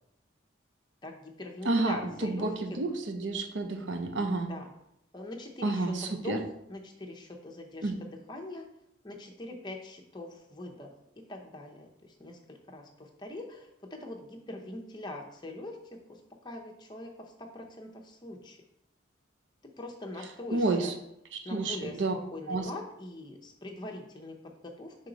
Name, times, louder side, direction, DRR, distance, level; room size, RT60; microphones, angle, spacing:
voice 1, 1.0-2.8 4.5-4.7 5.1-8.6 9.0-10.9 11.3-15.8 16.1-18.6 19.8-20.9 21.4-24.9, left 2 dB, 20° left, 1 dB, 0.8 m, -43 dB
voice 2, 1.7-2.0 2.2-4.5 5.6-6.4 7.8-8.0 20.5-20.9 21.5-22.1 22.5-22.6, right 2 dB, 70° right, 6 dB, 0.7 m, -30 dB
6.4 x 3.9 x 3.9 m, 0.80 s
head